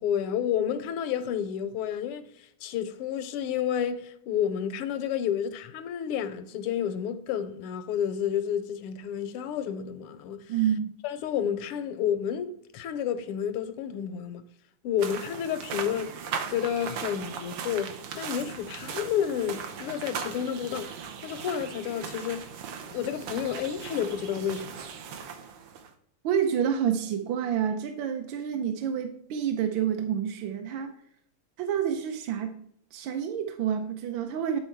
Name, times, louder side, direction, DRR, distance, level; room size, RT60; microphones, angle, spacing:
voice 1, 0.0-10.5 11.0-14.4 14.8-16.1 16.5-22.5 22.9-24.8, left 9 dB, 85° left, 1.6 m, -30 dB
voice 2, 10.5-10.9 26.2-30.9 31.6-32.5 32.9-34.6, right 8 dB, 70° right, 1.3 m, -28 dB
sound 1, 15.0-25.9, right 7 dB, 90° right, 1.9 m, -38 dB
8.9 x 4.2 x 4.5 m
omnidirectional pair, 2.4 m